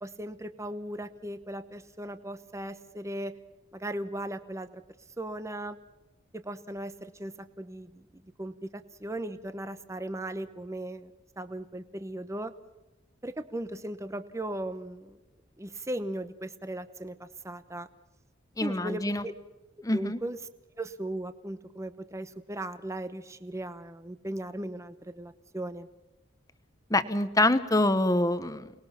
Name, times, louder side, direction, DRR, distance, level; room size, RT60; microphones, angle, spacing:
voice 1, 0.0-3.3 3.7-4.8 5.2-5.8 6.3-11.1 11.4-12.5 13.2-15.2 15.6-17.9 18.6-19.3 19.9-20.4 20.8-25.9, right 1 dB, 15° right, 11 dB, 0.9 m, -37 dB
voice 2, 18.6-19.2 19.8-20.2 26.9-28.7, left 2 dB, 15° left, 12 dB, 1.0 m, -25 dB
29.0 x 20.0 x 5.8 m, 1.0 s
head